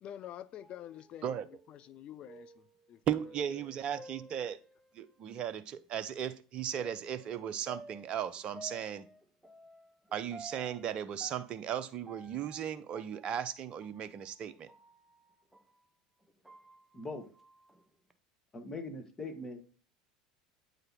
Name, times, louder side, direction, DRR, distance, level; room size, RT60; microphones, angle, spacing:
voice 1, 0.0-3.0 3.6-4.1, left 11 dB, 40° left, 0.5 m, -48 dB
sound 1, 0.6-5.2 5.7-5.8 6.8-15.8 16.2-18.1, right 2 dB, 5° right, 0.7 m, -54 dB
voice 2, 3.1-4.6 4.9-9.1 10.1-14.7, right 9 dB, 40° right, 0.6 m, -36 dB
voice 3, 18.5-19.6, left 2 dB, 20° left, 1.7 m, -41 dB
8.9 x 4.0 x 4.2 m
figure-of-eight pair, 75°, 3 cm